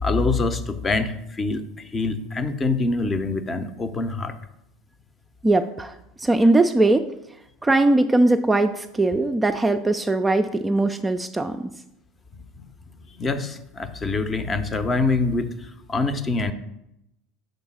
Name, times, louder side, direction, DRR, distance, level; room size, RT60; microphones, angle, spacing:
voice 1, 0.0-4.3 12.6-12.7 13.2-16.5, left 3 dB, 25° left, 10 dB, 0.6 m, -25 dB
voice 2, 5.4-7.1 7.6-11.7, right 2 dB, 15° right, 7 dB, 0.4 m, -20 dB
5.3 x 3.9 x 5.9 m, 0.84 s
hypercardioid pair, 75°, 0 cm